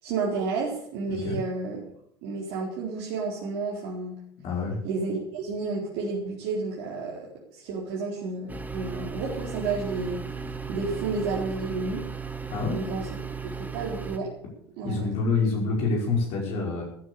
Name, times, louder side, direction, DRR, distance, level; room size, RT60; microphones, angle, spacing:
voice 1, 0.0-1.8 2.2-4.2 4.8-7.2 7.5-10.2 10.7-12.0 12.7-13.1 13.5-14.3 14.8-15.1, right 4 dB, 60° right, -4 dB, 4.2 m, -31 dB
voice 2, 4.4-4.8 12.5-12.8 14.8-16.8, left 4 dB, 55° left, -1 dB, 5.2 m, -27 dB
sound 1, 8.5-14.2, right 5 dB, 10° right, 2.5 m, -36 dB
14.5 x 9.8 x 7.0 m, 0.67 s
hypercardioid pair, 70°, 13 cm